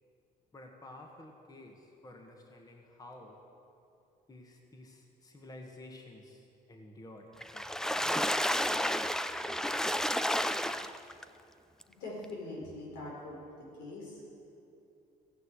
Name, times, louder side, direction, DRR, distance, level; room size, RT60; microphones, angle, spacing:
voice 1, 0.5-3.4 4.3-7.9, left 1 dB, 20° left, 1 dB, 1.6 m, -51 dB
Water / Splash splatter, 7.4-11.2 11.8-11.9 12.2-12.3, left 1 dB, 5° left, 0.4 m, -31 dB
voice 2, 12.0-13.4 13.8-14.1, left 2 dB, 85° left, -3 dB, 4.5 m, -42 dB
15.0 x 9.2 x 8.1 m, 2.7 s
cardioid pair, 110°, 17 cm